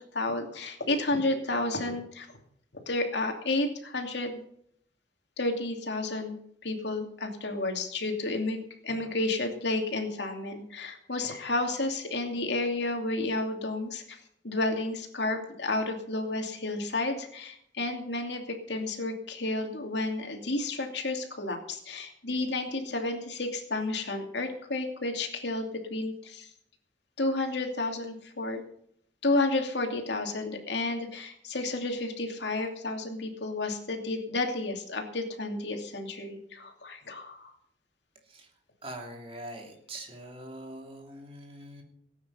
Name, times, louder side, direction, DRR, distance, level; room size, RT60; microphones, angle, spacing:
voice 1, 0.1-2.4 2.9-4.4 5.4-6.4 6.6-8.6 8.8-18.4 18.7-26.5 27.2-28.6 29.2-37.5, left 2 dB, 70° left, 4 dB, 2.7 m, -31 dB
voice 2, 38.8-41.8, right 1 dB, 30° right, 2 dB, 2.9 m, -43 dB
18.0 x 9.3 x 5.7 m, 0.68 s
head